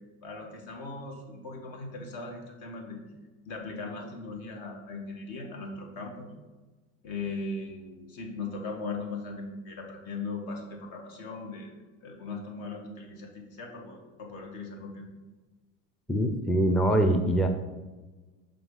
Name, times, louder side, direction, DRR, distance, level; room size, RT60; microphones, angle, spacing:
voice 1, 0.2-3.0 3.5-6.3 7.0-11.7 12.0-15.1, left 3 dB, 60° left, 1 dB, 1.8 m, -39 dB
voice 2, 16.1-17.5, right 1 dB, ahead, 5 dB, 0.4 m, -23 dB
5.9 x 3.7 x 5.4 m, 1.2 s
supercardioid pair, 90°, 39 cm